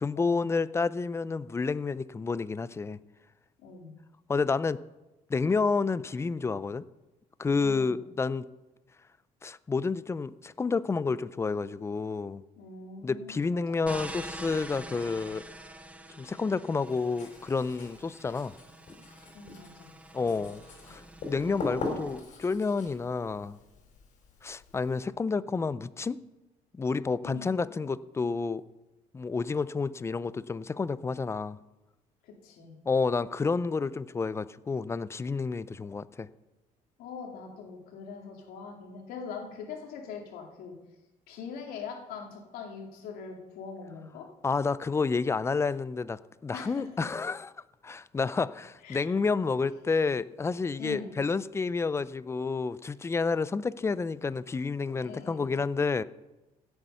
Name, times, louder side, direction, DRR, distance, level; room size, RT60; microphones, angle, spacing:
voice 1, 0.0-3.0 4.3-4.8 5.3-6.8 7.4-8.5 9.4-12.4 13.0-15.4 16.2-18.5 20.1-23.6 24.4-26.2 26.7-28.6 29.1-31.6 32.9-36.3 44.4-47.5 47.8-56.0, left 4 dB, 20° left, 17 dB, 0.4 m, -30 dB
voice 2, 3.6-3.9 7.6-8.0 12.6-13.9 19.3-19.9 20.3-20.4 20.8-20.9 27.2-27.6 32.2-32.7 37.0-40.8 41.3-44.3 46.5-46.8 48.8-49.1 50.8-51.2 55.0-55.5, left 5 dB, 85° left, 2 dB, 2.6 m, -42 dB
sound 1, 13.8-22.2, right 1 dB, 10° right, 1.0 m, -46 dB
Writing, 16.8-25.0, left 3 dB, 55° left, 4.9 m, -42 dB
16.5 x 8.0 x 5.6 m, 1.0 s
cardioid pair, 115°, 15 cm